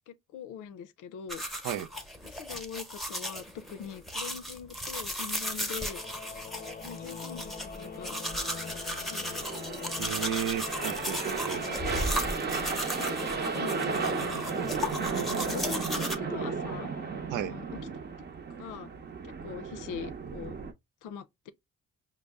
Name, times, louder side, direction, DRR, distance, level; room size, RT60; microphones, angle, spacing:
voice 1, 0.1-1.4 2.3-6.0 6.8-8.3 9.1-9.5 9.7-10.0 11.7-12.0 12.9-14.5 14.9-16.9 17.3-17.8 18.6-18.9 19.2-20.6 21.0-21.5, left 8 dB, 90° left, 0.6 m, -43 dB
sound 1, 1.3-16.2, equal, ahead, 0.9 m, -36 dB
Singing / Musical instrument, 5.8-18.2, left 6 dB, 30° left, 0.5 m, -43 dB
sound 2, 7.4-20.7, right 5 dB, 35° right, 0.7 m, -35 dB
voice 2, 10.0-11.7 17.3-17.6, right 10 dB, 90° right, 0.5 m, -34 dB
5.3 x 2.1 x 3.4 m
cardioid pair, 90°, 30 cm